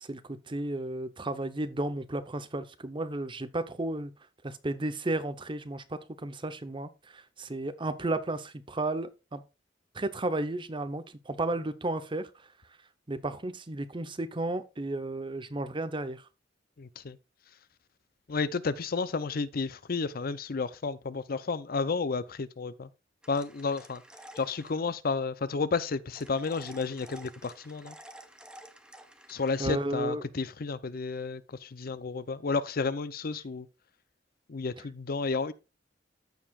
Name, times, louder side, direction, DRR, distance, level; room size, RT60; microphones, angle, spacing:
voice 1, 0.0-4.1 4.4-9.4 9.9-12.3 13.1-16.2 29.6-30.2, right 2 dB, 30° right, 0.8 m, -33 dB
voice 2, 16.8-17.2 18.3-22.9 23.3-24.0 24.4-28.0 29.3-33.7 34.5-35.5, left 4 dB, 55° left, 0.6 m, -32 dB
sound 1, 23.2-24.8 26.1-29.7, right 1 dB, 5° right, 0.9 m, -51 dB
14.0 x 4.9 x 2.4 m
head